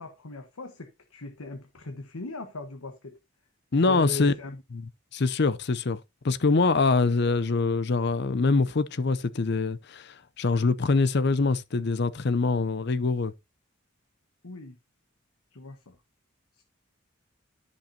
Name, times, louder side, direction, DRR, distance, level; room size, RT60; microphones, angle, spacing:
voice 1, 0.0-3.1 3.9-4.6 14.4-14.8 15.5-15.9 16.5-16.6, left 2 dB, 85° left, 1.2 m, -39 dB
voice 2, 3.7-4.3 4.7-6.0 6.2-13.3, left 3 dB, 50° left, 0.6 m, -24 dB
13.5 x 5.4 x 2.8 m
head